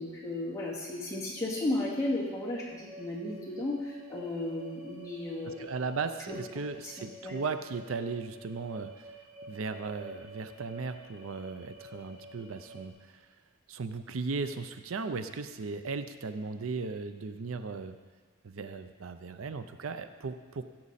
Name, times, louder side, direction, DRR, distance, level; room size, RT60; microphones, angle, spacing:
voice 1, 0.0-5.7 6.3-6.4 7.0-7.4, left 1 dB, 15° left, -6 dB, 2.4 m, -34 dB
sound 1, 1.3-12.9, equal, 35° right, 2.8 m, -50 dB
voice 2, 5.5-9.2 9.5-13.3 13.7-18.0 18.4-20.6, right 4 dB, 85° right, 10 dB, 0.6 m, -37 dB
16.5 x 7.3 x 4.2 m, 1.4 s
head